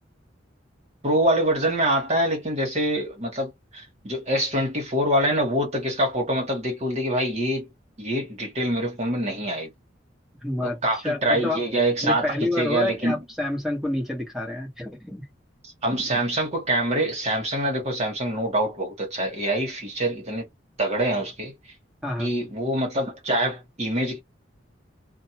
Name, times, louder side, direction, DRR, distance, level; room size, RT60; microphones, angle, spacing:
voice 1, 1.0-7.7 8.0-9.7 10.6-13.2 15.8-20.5 20.8-21.5 22.2-24.2, right 1 dB, 35° right, 1.2 m, -25 dB
voice 2, 10.4-10.8 11.0-11.6 12.0-15.3 22.0-22.3, left 1 dB, ahead, 1.1 m, -28 dB
2.6 x 2.1 x 2.8 m
head